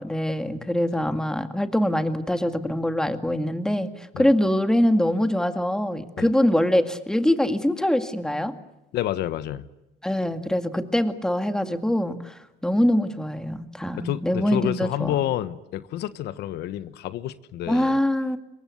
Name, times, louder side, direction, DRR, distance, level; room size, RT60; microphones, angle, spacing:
voice 1, 0.0-8.6 10.0-15.2 17.7-18.4, left 1 dB, 5° left, 8 dB, 2.0 m, -23 dB
voice 2, 8.9-9.7 13.9-18.0, left 13 dB, 75° left, 13 dB, 1.2 m, -29 dB
26.5 x 23.0 x 8.3 m, 0.94 s
cardioid pair, 110°, 17 cm